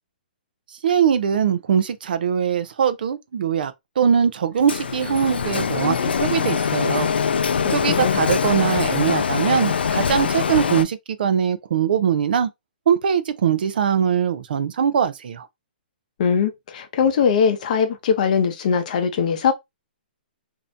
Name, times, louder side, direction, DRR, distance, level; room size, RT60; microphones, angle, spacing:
voice 1, 0.8-7.1 7.4-12.5 12.9-15.5, right 8 dB, 65° right, 0.4 m, -21 dB
Printer, 4.7-10.8, left 6 dB, 85° left, 0.3 m, -23 dB
voice 2, 7.6-8.2 16.2-19.5, left 6 dB, 50° left, 0.7 m, -21 dB
2.6 x 2.1 x 2.6 m
hypercardioid pair, 145°, 5 cm